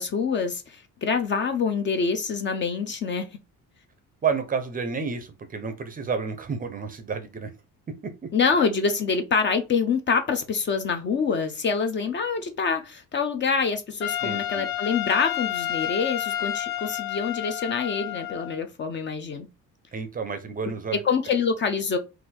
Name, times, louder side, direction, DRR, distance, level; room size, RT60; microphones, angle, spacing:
voice 1, 0.0-3.3 8.3-19.5 21.0-22.0, left 5 dB, 35° left, 0.5 m, -26 dB
voice 2, 4.2-7.5 7.9-8.1 14.2-14.7 19.9-21.0, right 5 dB, 25° right, 0.5 m, -30 dB
Trumpet, 14.0-18.6, left 12 dB, 85° left, 1.0 m, -30 dB
3.9 x 2.6 x 4.1 m
cardioid pair, 180°, 34 cm